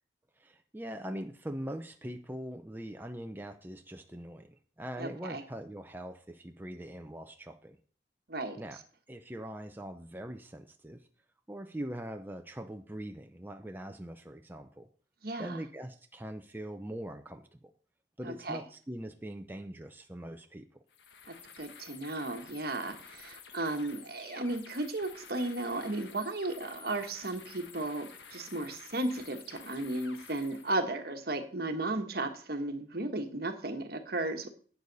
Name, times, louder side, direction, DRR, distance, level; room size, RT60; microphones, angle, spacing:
voice 1, 0.4-7.8 8.6-8.8 9.1-11.0 11.5-14.9 15.4-17.7 18.2-20.8, right 1 dB, 10° right, 5 dB, 0.6 m, -42 dB
voice 2, 5.0-5.4 8.3-8.6 15.2-15.6 18.2-18.6 21.6-34.5, right 2 dB, 60° right, 6 dB, 1.3 m, -35 dB
sound 1, 20.9-30.8, left 6 dB, 85° left, 1.3 m, -51 dB
11.5 x 8.3 x 4.0 m, 0.43 s
head